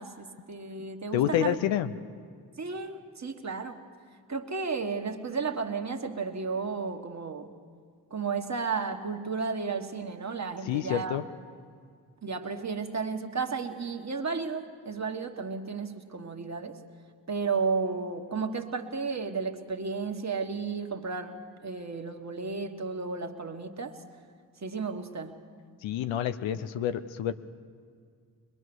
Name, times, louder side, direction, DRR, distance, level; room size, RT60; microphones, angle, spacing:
voice 1, 0.0-1.5 2.6-3.8 4.3-7.5 8.1-11.2 12.2-16.8 17.3-24.0 24.6-25.4, right 4 dB, 40° right, 4 dB, 1.7 m, -33 dB
voice 2, 1.1-1.9 10.7-11.3 25.8-27.3, left 11 dB, 90° left, 11 dB, 0.7 m, -28 dB
22.0 x 21.5 x 6.3 m, 2.1 s
supercardioid pair, 50°, 44 cm